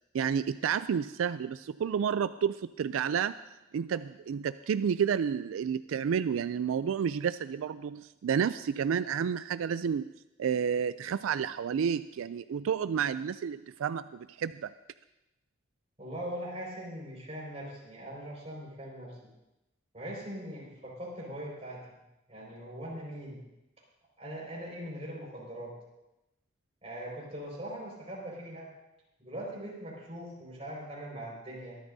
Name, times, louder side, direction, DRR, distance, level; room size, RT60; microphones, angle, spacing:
voice 1, 0.1-3.4 3.7-10.0 10.4-14.7, right 7 dB, 85° right, 14 dB, 0.3 m, -30 dB
voice 2, 16.0-19.2 19.9-21.8 22.3-23.4 24.2-25.7 26.8-28.7 29.2-31.8, right 1 dB, 30° right, -3 dB, 5.2 m, -41 dB
23.0 x 12.0 x 2.7 m, 0.94 s
head